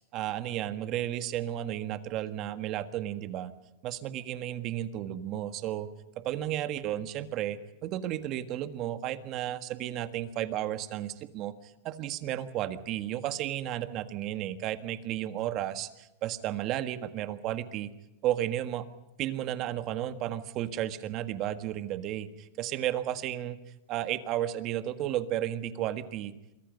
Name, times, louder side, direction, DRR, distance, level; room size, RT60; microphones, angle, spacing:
voice 1, 0.1-3.5 3.8-5.9 6.2-11.5 11.8-17.9 18.2-18.8 19.2-23.6 23.9-26.3, right 12 dB, 35° right, 10 dB, 1.6 m, -33 dB
27.5 x 24.0 x 5.4 m, 0.92 s
supercardioid pair, 145°, 0 cm